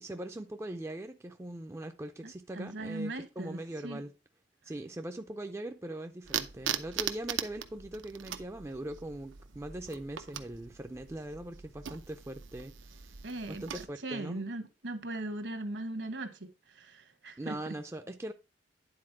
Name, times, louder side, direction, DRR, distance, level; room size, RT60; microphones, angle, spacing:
voice 1, 0.0-4.1 4.6-13.2 13.5-14.4 17.4-18.3, right 1 dB, 15° right, 0.4 m, -41 dB
voice 2, 2.2-4.0 13.2-13.6 14.0-17.7, right 2 dB, 65° right, 1.2 m, -39 dB
sound 1, 6.2-13.8, right 9 dB, 90° right, 0.7 m, -40 dB
9.7 x 4.2 x 4.4 m
head